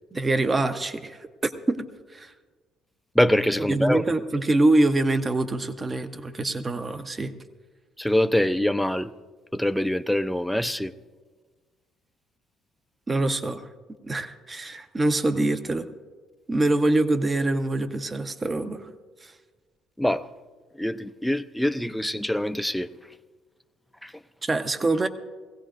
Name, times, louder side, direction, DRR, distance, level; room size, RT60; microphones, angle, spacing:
voice 1, 0.1-1.9 2.1-2.3 3.7-7.3 13.1-13.7 14.1-15.9 16.5-18.9 19.2-19.3 24.4-25.1, right 2 dB, 25° right, 0.8 m, -24 dB
voice 2, 3.2-4.0 8.0-9.1 9.5-10.9 20.0-20.3 20.8-22.9 24.0-24.1, left 1 dB, 5° left, 0.5 m, -24 dB
20.5 x 16.0 x 2.5 m
supercardioid pair, 80°, 0 cm